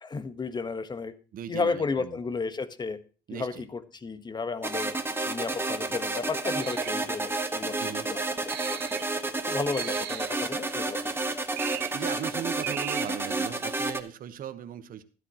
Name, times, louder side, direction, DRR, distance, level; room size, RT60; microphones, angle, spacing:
voice 1, 0.0-1.1 1.5-3.0 3.3-4.9 5.2-8.8 9.4-11.0, left 4 dB, 25° left, 12 dB, 1.3 m, -33 dB
voice 2, 1.3-2.2 3.3-3.7 7.8-8.1 11.9-15.0, right 10 dB, 55° right, 10 dB, 1.2 m, -38 dB
sound 1, 4.6-14.0, right 2 dB, 15° right, 1.4 m, -31 dB
sound 2, 6.6-7.0 8.5-9.2 9.7-10.5 11.6-12.1 12.6-13.3, right 16 dB, 75° right, 0.6 m, -38 dB
12.5 x 12.5 x 3.0 m, 0.37 s
cardioid pair, 110°, 17 cm